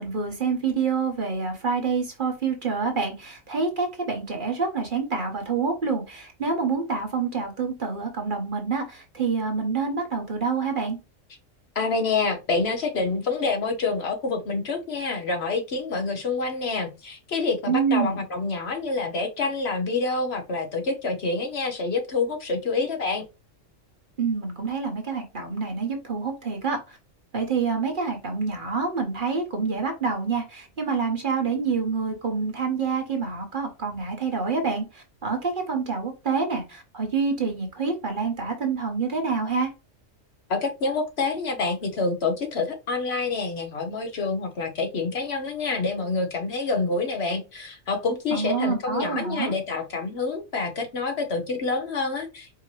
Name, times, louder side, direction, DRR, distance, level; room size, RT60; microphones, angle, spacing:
voice 1, 0.0-11.0 17.7-18.2 24.2-27.0 27.3-39.7 48.3-49.5, right 5 dB, 45° right, 3 dB, 1.0 m, -27 dB
voice 2, 11.8-23.2 40.5-52.6, left 3 dB, 55° left, 4 dB, 1.0 m, -27 dB
4.8 x 2.9 x 2.9 m, 0.28 s
omnidirectional pair, 1.3 m